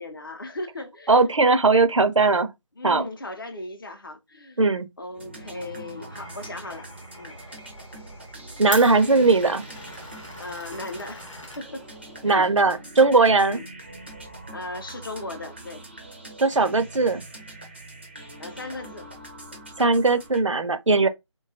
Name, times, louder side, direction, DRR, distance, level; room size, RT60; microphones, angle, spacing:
voice 1, 0.0-1.2 2.8-4.6 5.0-6.9 7.2-7.4 10.4-11.3 11.6-11.9 12.2-12.5 13.4-13.7 14.5-15.9 18.4-19.1, left 2 dB, 45° left, 0.6 m, -37 dB
voice 2, 1.1-2.5 2.8-3.0 4.6-4.9 8.6-9.6 12.2-13.6 16.4-17.2 19.8-21.1, right 3 dB, 75° right, 0.5 m, -19 dB
sound 1, 5.1-20.4, right 1 dB, 20° right, 0.4 m, -43 dB
Glass, 6.1-12.4, left 1 dB, 85° left, 0.8 m, -42 dB
2.7 x 2.3 x 2.6 m
figure-of-eight pair, 155°, 16 cm